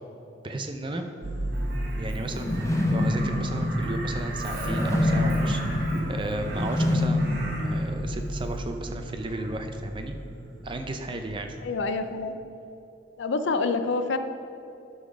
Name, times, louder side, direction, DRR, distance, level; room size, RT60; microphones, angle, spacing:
voice 1, 0.4-1.0 2.0-5.8 6.1-10.1 10.6-11.6, right 1 dB, 25° right, 6 dB, 0.5 m, -34 dB
sound 1, 1.2-11.7, right 1 dB, 70° right, 1.2 m, -35 dB
Crow, 1.5-7.9 9.3-9.5, right 1 dB, 50° right, 1.4 m, -38 dB
sound 2, 2.3-8.4, left 1 dB, 15° left, 0.6 m, -27 dB
voice 2, 11.6-12.4 13.2-14.2, left 3 dB, 70° left, 10 dB, 0.5 m, -27 dB
11.5 x 4.0 x 6.3 m, 2.8 s
head